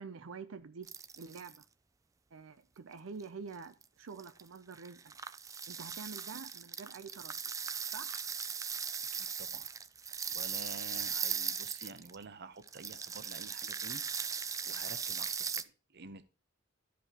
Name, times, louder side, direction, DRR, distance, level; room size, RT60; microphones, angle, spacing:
voice 1, 0.0-1.7 2.3-5.1 5.7-7.4 7.9-8.2, right 5 dB, 85° right, 0.6 m, -47 dB
sound 1, 0.8-1.6 3.2-3.3 3.8-3.9 4.2-4.5 4.7-12.2 12.6-15.6, right 6 dB, 15° right, 0.3 m, -38 dB
voice 2, 9.1-9.7 10.3-14.0 14.6-16.3, right 4 dB, 55° right, 0.8 m, -49 dB
13.0 x 5.2 x 2.9 m
head